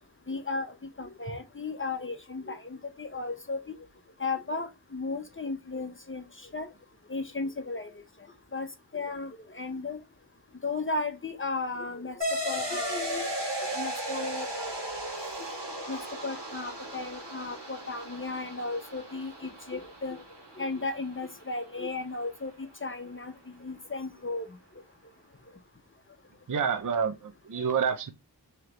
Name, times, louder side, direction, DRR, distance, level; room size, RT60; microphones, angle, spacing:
voice 1, 0.3-3.8 4.2-6.7 7.1-7.9 8.5-8.7 8.9-10.0 10.6-13.5 13.8-14.9 15.8-20.2 20.6-23.3 23.6-24.5 27.5-27.7, left 3 dB, 30° left, 0.6 m, -35 dB
sound 1, 12.2-21.2, right 1 dB, 90° right, 1.5 m, -36 dB
voice 2, 26.5-28.1, right 6 dB, 50° right, 0.5 m, -28 dB
3.3 x 2.9 x 3.7 m
wide cardioid pair, 45°, 41 cm